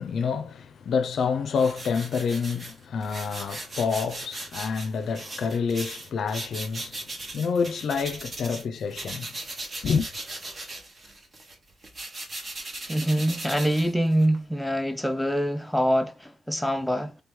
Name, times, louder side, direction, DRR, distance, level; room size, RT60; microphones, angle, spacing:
voice 1, 0.0-9.3 9.8-10.1, left 5 dB, 60° left, 0.4 m, -28 dB
sound 1, 1.6-8.6 8.9-14.4, right 2 dB, 35° right, 1.1 m, -38 dB
voice 2, 12.8-17.2, equal, 5° left, 0.5 m, -25 dB
3.3 x 3.0 x 3.6 m
cardioid pair, 80°, 0 cm